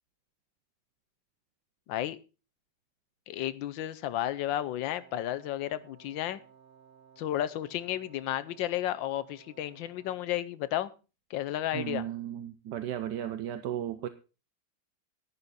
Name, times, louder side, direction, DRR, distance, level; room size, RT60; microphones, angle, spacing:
voice 1, 3.3-6.4 7.2-10.9 11.3-12.1, left 12 dB, 70° left, 13 dB, 1.3 m, -32 dB
Wind instrument woodwind instrument, 4.8-10.5, right 8 dB, 90° right, 2.1 m, -58 dB
voice 2, 11.7-14.1, right 11 dB, 65° right, 11 dB, 1.1 m, -35 dB
11.0 x 10.5 x 4.1 m, 0.32 s
omnidirectional pair, 2.4 m